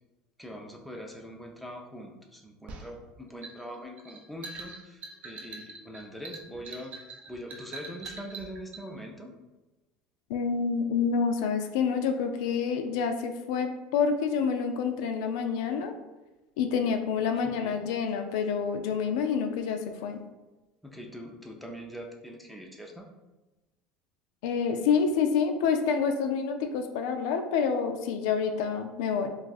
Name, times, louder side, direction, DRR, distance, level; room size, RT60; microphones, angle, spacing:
voice 1, 0.4-7.0 7.3-9.3 17.2-17.8 20.8-23.1, equal, ahead, 1 dB, 0.5 m, -43 dB
sound 1, 2.7-8.8, right 3 dB, 50° right, 0.5 m, -43 dB
voice 2, 10.3-15.9 16.6-20.2 24.4-29.3, left 6 dB, 80° left, 6 dB, 0.4 m, -28 dB
2.6 x 2.4 x 3.9 m, 1.1 s
supercardioid pair, 120°, 3 cm